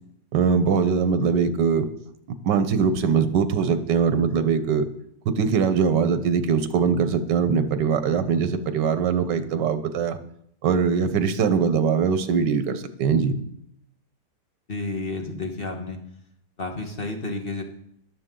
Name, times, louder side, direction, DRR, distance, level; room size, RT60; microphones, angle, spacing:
voice 1, 0.3-1.9 2.4-4.9 5.4-10.2 10.6-13.4, right 6 dB, 90° right, 11 dB, 1.5 m, -22 dB
voice 2, 14.7-16.0 16.6-17.6, left 3 dB, 35° left, 3 dB, 1.6 m, -31 dB
13.5 x 11.0 x 3.8 m, 0.73 s
omnidirectional pair, 1.8 m